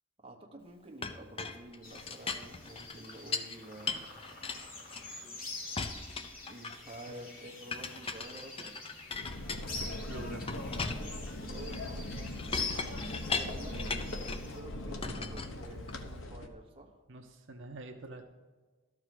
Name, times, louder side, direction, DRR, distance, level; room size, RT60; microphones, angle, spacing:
voice 1, 0.2-4.1 6.5-8.8 11.4-12.5 13.3-17.0, right 1 dB, 30° right, 1 dB, 1.3 m, -49 dB
Chink clink, 1.0-3.6 3.9-5.4 5.8-7.0 7.7-10.0 10.5-14.5 15.0-16.2, left 4 dB, 30° left, 0.6 m, -39 dB
sound 1, 1.8-14.6, left 4 dB, 50° left, 2.7 m, -45 dB
sound 2, 9.1-16.5, left 1 dB, 75° left, 1.0 m, -40 dB
voice 2, 10.0-10.4 13.7-14.0 17.1-18.3, right 2 dB, 70° right, 4 dB, 0.8 m, -46 dB
12.5 x 4.8 x 7.7 m, 1.3 s
head